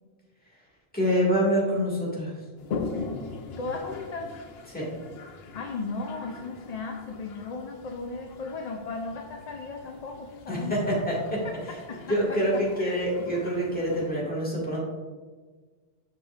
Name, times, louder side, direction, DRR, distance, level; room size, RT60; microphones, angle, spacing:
voice 1, 0.9-2.3 4.7-4.9 10.5-11.4 12.1-14.8, equal, 10° left, -6 dB, 1.8 m, -26 dB
Toilet flush, 2.6-14.1, left 4 dB, 75° left, 0.9 m, -41 dB
voice 2, 3.3-4.3 5.5-10.8 11.4-12.4 12.8-13.3, left 3 dB, 50° left, 2 dB, 0.5 m, -36 dB
7.5 x 5.7 x 2.4 m, 1.4 s
omnidirectional pair, 1.1 m